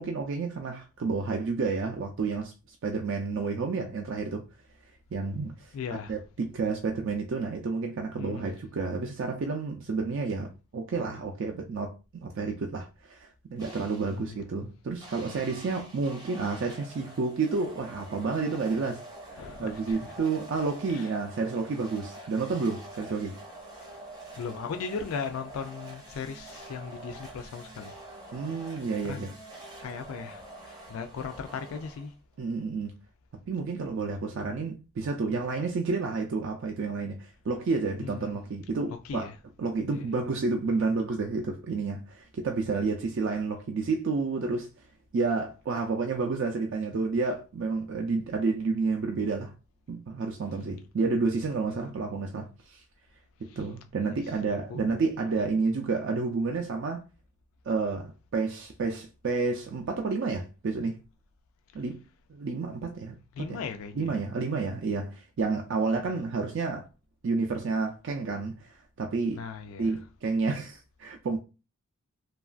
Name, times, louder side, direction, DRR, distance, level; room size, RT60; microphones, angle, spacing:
voice 1, 0.0-4.4 5.1-5.7 6.1-19.0 19.3-23.4 28.3-29.3 32.4-33.0 33.5-39.3 39.6-44.7 45.1-49.5 49.9-52.8 53.6-57.0 57.7-61.0 61.7-62.0 62.3-63.2 63.5-63.6 64.0-66.8 67.2-69.4 69.8-71.4, right 4 dB, 60° right, 0.4 m, -30 dB
voice 2, 5.7-6.2 8.2-8.4 14.0-14.5 15.3-15.4 19.3-20.1 20.9-21.1 23.9-24.0 24.4-28.0 29.0-29.3 29.8-32.1 38.0-38.4 38.9-39.4 39.9-40.1 51.7-51.9 53.5-53.6 54.0-54.8 61.7-61.8 63.3-64.2 66.0-66.2 69.3-70.0, left 6 dB, 80° left, 0.3 m, -38 dB
sound 1, 13.6-14.3 15.0-32.3, right 1 dB, 20° right, 0.6 m, -46 dB
2.9 x 2.3 x 2.4 m
head